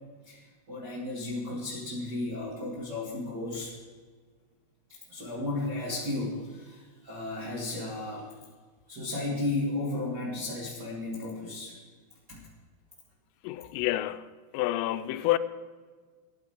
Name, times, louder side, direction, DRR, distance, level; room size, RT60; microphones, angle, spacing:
voice 1, 0.2-3.7 5.1-8.3 8.9-11.7 12.3-12.4, left 2 dB, 45° right, 1.4 m, -34 dB
voice 2, 13.4-14.3 14.5-15.4, left 15 dB, 85° left, 3.2 m, -28 dB
14.0 x 10.5 x 4.9 m
omnidirectional pair, 5.8 m